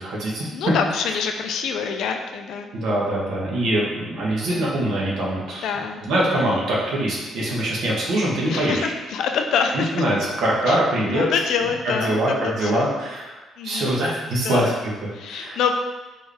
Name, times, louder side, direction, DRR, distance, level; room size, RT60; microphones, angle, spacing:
voice 1, 0.0-0.5 2.7-5.7 6.1-8.9 9.7-11.3 12.0-13.4 13.6-14.9 15.3-15.6, right 1 dB, 65° right, -5 dB, 1.2 m, -23 dB
voice 2, 0.5-2.7 5.6-6.0 6.5-6.6 8.5-10.0 10.7-10.8 11.1-12.9 13.6-13.9 14.4-14.7 15.1-15.7, left 6 dB, 70° left, 5 dB, 0.4 m, -26 dB
4.5 x 3.3 x 3.3 m, 1.2 s
cardioid pair, 160°, 0 cm